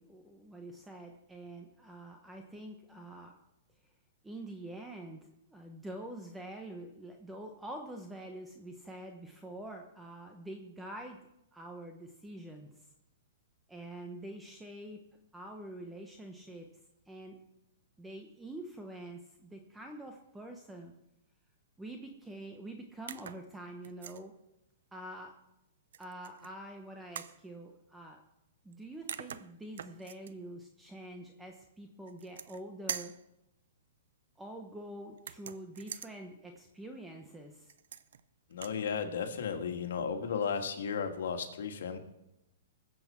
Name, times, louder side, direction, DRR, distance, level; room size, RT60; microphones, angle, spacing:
voice 1, 0.0-3.4 4.2-11.2 11.5-12.9 13.7-15.0 15.3-16.7 17.1-17.4 18.0-20.9 21.8-24.3 24.9-25.3 26.0-28.2 28.6-33.1 34.4-37.7, right 1 dB, 5° right, 3 dB, 0.9 m, -46 dB
sound 1, 23.1-23.4 23.8-24.2 25.9-26.5 27.1-27.4 28.7-28.8 29.1-30.3 32.1-32.6 32.9-33.2 35.2-36.1 37.7-38.2 38.5-38.8, right 8 dB, 75° right, 0.7 m, -43 dB
voice 2, 38.5-42.0, left 6 dB, 75° left, 5 dB, 1.9 m, -34 dB
21.0 x 7.9 x 4.4 m, 0.87 s
hypercardioid pair, 160°, 0 cm